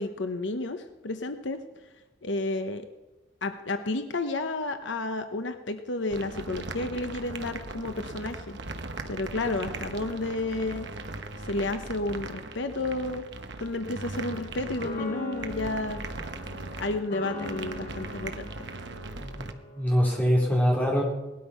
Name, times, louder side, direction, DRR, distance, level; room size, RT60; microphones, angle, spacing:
voice 1, 0.0-1.6 2.2-2.9 3.4-8.6 9.1-10.9 11.4-13.2 13.6-16.1 16.8-18.5, left 2 dB, 65° left, 8 dB, 0.9 m, -31 dB
sound 1, 6.1-19.5, right 3 dB, 60° right, 1.2 m, -39 dB
sound 2, 9.6-12.7 14.0-14.2 14.8-20.1, left 2 dB, 50° left, 3.8 m, -42 dB
voice 2, 19.7-21.0, equal, 10° left, -3 dB, 3.7 m, -23 dB
18.5 x 12.5 x 5.6 m, 1.0 s
head